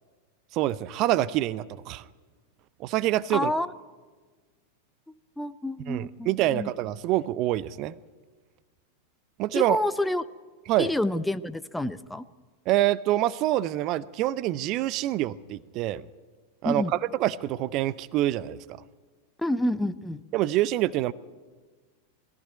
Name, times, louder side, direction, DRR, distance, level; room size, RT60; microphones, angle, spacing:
voice 1, 0.5-2.0 2.8-3.5 5.9-7.9 9.4-9.8 10.7-10.9 12.7-16.0 16.6-16.8 17.2-18.6 20.3-21.1, right 14 dB, 40° right, 20 dB, 0.5 m, -26 dB
voice 2, 3.3-3.7 5.4-6.7 9.5-10.2 10.8-12.2 16.6-16.9 19.4-20.2, left 1 dB, 5° left, 13 dB, 0.6 m, -28 dB
20.5 x 14.5 x 9.3 m, 1.4 s
figure-of-eight pair, 90°, 0 cm